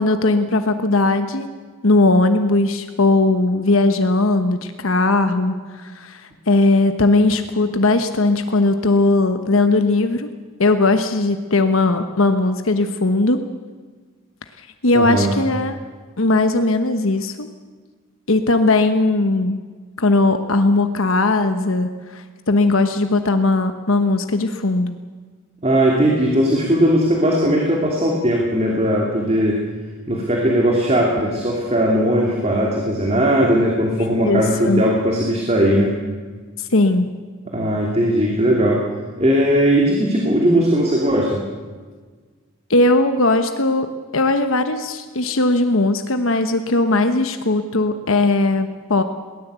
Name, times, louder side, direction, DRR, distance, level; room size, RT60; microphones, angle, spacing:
voice 1, 0.0-1.5 1.8-10.3 10.6-13.4 14.6-15.8 16.2-17.5 18.3-19.6 20.0-25.0 34.2-34.8 36.6-37.1 42.7-43.9 44.1-49.0, left 2 dB, 65° left, 8 dB, 1.2 m, -18 dB
voice 2, 14.9-15.3 25.6-29.6 30.1-35.9 37.5-38.8 39.2-41.4, equal, 30° right, -1 dB, 2.8 m, -18 dB
22.5 x 18.0 x 8.2 m, 1.5 s
head